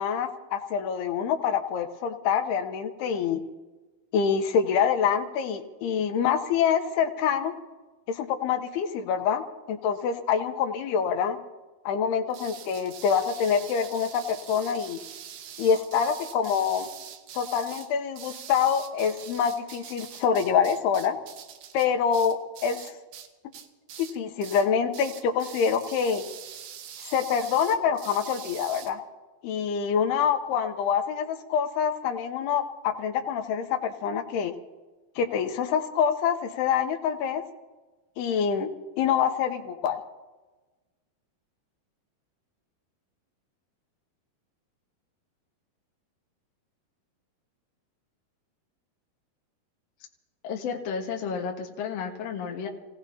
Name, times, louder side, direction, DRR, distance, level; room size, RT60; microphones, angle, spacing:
voice 1, 0.0-3.4 4.1-7.5 8.1-11.4 11.9-15.0 15.6-16.9 17.3-21.2 21.7-23.0 24.0-26.2 27.0-29.0 29.4-34.5 35.2-37.4 38.2-38.7 39.0-40.0, left 7 dB, 80° left, 7 dB, 2.9 m, -26 dB
sound 1, 12.3-23.3 23.5-24.2 24.4-24.7 24.9-28.9, right 9 dB, 80° right, 3.1 m, -44 dB
voice 2, 50.4-52.7, left 6 dB, 55° left, 0 dB, 2.0 m, -32 dB
28.0 x 17.5 x 2.8 m, 1.2 s
omnidirectional pair, 4.6 m